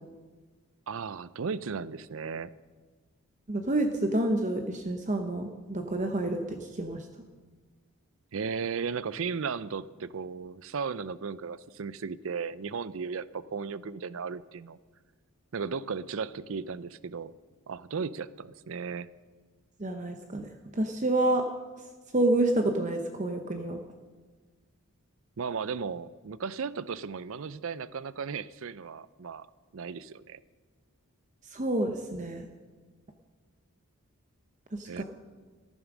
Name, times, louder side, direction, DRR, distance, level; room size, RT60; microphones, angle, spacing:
voice 1, 0.9-2.5 8.3-14.8 15.5-17.3 17.7-19.1 25.4-29.5 29.7-30.4 34.9-35.0, right 5 dB, 65° right, 18 dB, 0.5 m, -35 dB
voice 2, 3.5-7.1 19.8-21.4 22.1-23.8 31.5-32.5 34.7-35.0, right 1 dB, 35° right, 5 dB, 0.8 m, -28 dB
14.5 x 11.0 x 6.1 m, 1.4 s
head